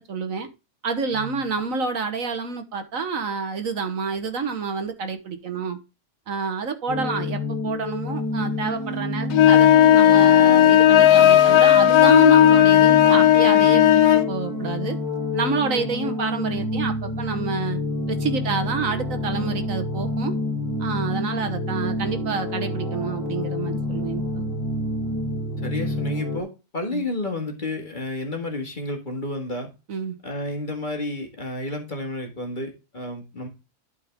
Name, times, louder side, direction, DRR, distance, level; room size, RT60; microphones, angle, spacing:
voice 1, 0.1-0.5 0.8-5.8 6.3-13.8 14.3-15.0 15.3-17.8 18.1-20.3 20.8-24.4 26.9-27.0 29.9-30.2, right 5 dB, 60° right, 7 dB, 1.5 m, -28 dB
voice 2, 1.1-1.6 15.7-16.2 25.6-29.7 30.2-33.5, left 1 dB, 30° left, 3 dB, 2.1 m, -31 dB
sound 1, 6.9-26.4, left 1 dB, 15° left, 1.8 m, -28 dB
sound 2, 9.3-14.3, left 11 dB, 90° left, 1.3 m, -14 dB
12.0 x 4.8 x 3.6 m, 0.28 s
omnidirectional pair, 1.6 m